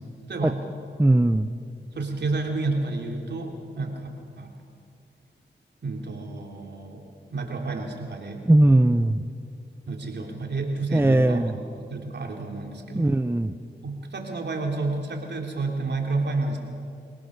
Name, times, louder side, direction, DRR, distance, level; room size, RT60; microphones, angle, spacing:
voice 1, 1.0-1.5 8.5-9.3 10.9-11.5 12.9-13.5, right 1 dB, 10° right, 10 dB, 0.8 m, -19 dB
voice 2, 1.9-4.1 4.4-4.5 5.8-7.1 7.3-8.5 9.9-13.1 13.8-16.6, right 3 dB, 65° right, 1 dB, 3.5 m, -30 dB
25.0 x 18.0 x 6.7 m, 2.4 s
cardioid pair, 45°, 19 cm